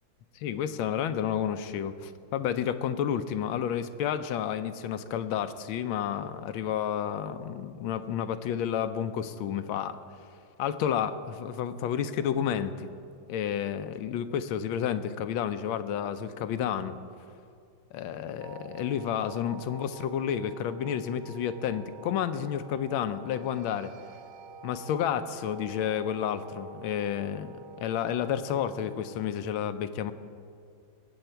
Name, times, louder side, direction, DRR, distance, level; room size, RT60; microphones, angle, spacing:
voice 1, 0.4-10.0 10.6-13.0 13.3-17.0 17.9-23.9 24.6-30.1, left 9 dB, 85° left, 11 dB, 1.4 m, -31 dB
sound 1, 18.4-29.3, right 3 dB, 65° right, 1.2 m, -48 dB
18.5 x 7.9 x 4.5 m, 2.4 s
omnidirectional pair, 2.2 m